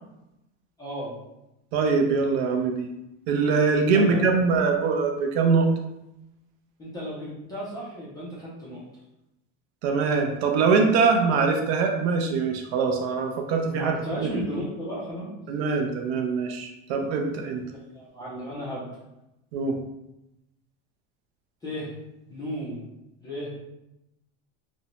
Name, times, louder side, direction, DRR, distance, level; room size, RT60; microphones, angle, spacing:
voice 1, 0.8-1.1 3.9-4.3 6.8-8.9 13.7-15.3 17.7-18.9 21.6-22.0 22.3-22.8 23.2-23.5, equal, 10° left, -8 dB, 0.3 m, -34 dB
voice 2, 1.7-2.9 3.3-5.7 9.8-14.3 15.5-17.6 19.5-19.7, right 4 dB, 60° right, 3 dB, 0.5 m, -23 dB
2.6 x 2.1 x 2.9 m, 0.90 s
supercardioid pair, 160°, 36 cm